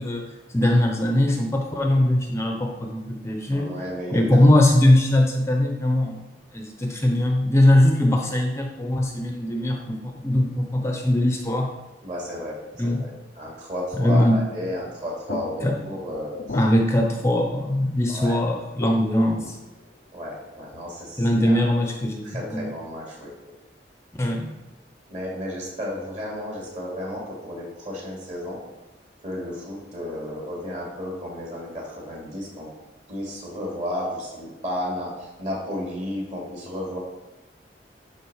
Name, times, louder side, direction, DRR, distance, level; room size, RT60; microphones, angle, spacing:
voice 1, 0.0-3.7 4.1-6.2 6.5-11.7 12.8-13.1 14.0-14.4 15.6-16.0 16.5-19.6 21.2-22.7 24.2-24.5, left 1 dB, 15° left, 2 dB, 0.6 m, -21 dB
voice 2, 3.5-4.2 12.0-13.1 13.4-16.6 18.1-18.4 20.1-21.6 22.2-23.5 25.1-28.6 29.2-32.7 33.1-37.0, left 1 dB, 40° right, -3 dB, 2.8 m, -33 dB
sound 1, 15.3-21.3, left 3 dB, 55° left, 0.4 m, -40 dB
11.0 x 3.8 x 5.5 m, 1.1 s
head